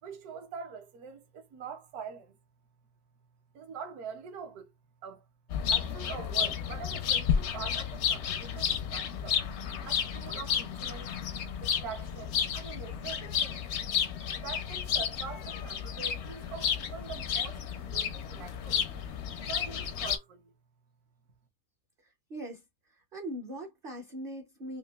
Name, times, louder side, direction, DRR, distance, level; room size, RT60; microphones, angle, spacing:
voice 1, 0.0-2.4 3.5-4.7 5.0-5.3 5.7-9.4 9.8-11.1 11.6-14.0 14.3-18.8 19.4-20.5, right 6 dB, 65° right, 1.3 m, -44 dB
sound 1, 5.5-20.2, left 8 dB, 65° left, 0.7 m, -32 dB
voice 2, 22.0-22.6 22.9-24.8, right 1 dB, 45° right, 0.7 m, -41 dB
5.1 x 2.5 x 2.3 m
omnidirectional pair, 1.8 m